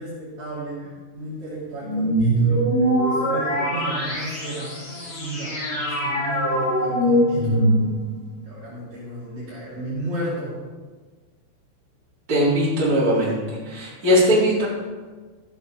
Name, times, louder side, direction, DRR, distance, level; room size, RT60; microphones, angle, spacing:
voice 1, 0.0-4.7 5.1-7.7 8.4-10.6, right 1 dB, 50° right, -8 dB, 3.8 m, -33 dB
sound 1, 1.8-8.1, right 1 dB, 85° left, 7.0 m, -22 dB
voice 2, 12.3-13.4 13.6-14.7, equal, 20° right, -7 dB, 3.6 m, -19 dB
15.0 x 6.8 x 5.7 m, 1.4 s
omnidirectional pair, 5.7 m